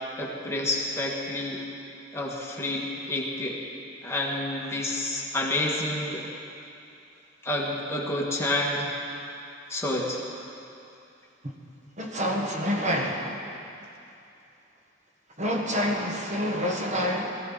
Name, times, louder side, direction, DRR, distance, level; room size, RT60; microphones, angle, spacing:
voice 1, 0.2-1.6 2.1-3.6 4.0-6.3 7.4-8.9 9.7-10.2, left 1 dB, 15° left, -3 dB, 1.7 m, -29 dB
voice 2, 12.0-13.3 15.4-17.4, equal, 40° right, 0 dB, 1.4 m, -27 dB
20.5 x 15.0 x 4.0 m, 2.7 s
head